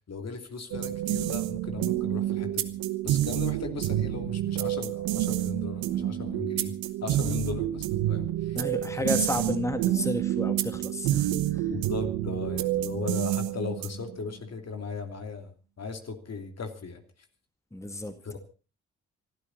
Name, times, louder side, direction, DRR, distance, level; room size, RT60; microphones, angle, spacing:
voice 1, 0.1-2.7 3.0-6.7 7.0-8.6 9.0-9.2 9.5-9.6 11.7-15.5 15.8-17.0 18.2-18.4, left 4 dB, 45° left, 5 dB, 2.9 m, -37 dB
sound 1, 0.7-14.2, right 13 dB, 75° right, 1.2 m, -29 dB
voice 2, 8.5-11.7 17.7-18.2, left 1 dB, 10° left, 7 dB, 2.1 m, -32 dB
25.5 x 12.5 x 4.1 m, 0.35 s
hypercardioid pair, 45°, 35 cm